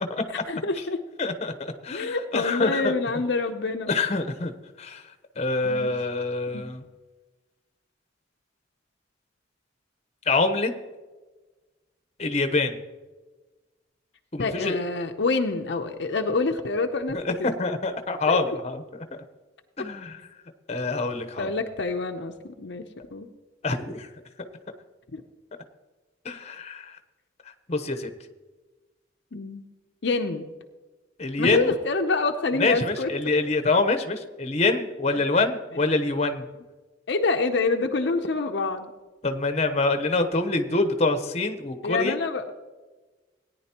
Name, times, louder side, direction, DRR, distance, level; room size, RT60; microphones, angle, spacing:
voice 1, 0.5-1.0 1.9-3.9 5.6-5.9 6.5-6.7 14.4-17.6 18.3-18.6 21.4-22.8 23.1-23.3 25.1-25.2 29.3-29.7 30.0-30.5 31.4-33.1 35.1-35.2 37.1-38.9 41.8-42.5, left 3 dB, 60° left, 4 dB, 0.7 m, -27 dB
voice 2, 1.2-2.9 3.9-4.5 4.8-5.0 5.4-6.8 10.3-10.7 12.2-12.8 14.3-14.8 17.3-17.4 17.6-18.8 19.8-20.1 20.7-21.5 23.6-24.1 26.2-27.0 27.7-28.1 31.2-31.7 32.6-36.4 39.2-42.1, left 3 dB, 35° left, 8 dB, 0.9 m, -25 dB
17.5 x 10.0 x 2.9 m, 1.2 s
head